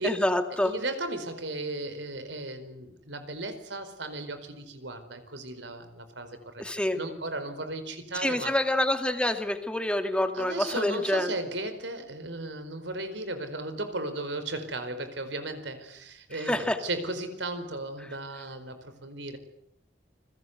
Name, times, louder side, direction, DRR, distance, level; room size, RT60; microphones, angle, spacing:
voice 1, 0.0-0.7 6.6-7.0 8.1-11.3 16.5-16.8, left 1 dB, 5° left, 6 dB, 2.3 m, -27 dB
voice 2, 0.6-6.6 6.9-8.5 10.3-19.4, right 2 dB, 85° right, 10 dB, 4.7 m, -35 dB
29.0 x 22.0 x 8.2 m, 0.76 s
head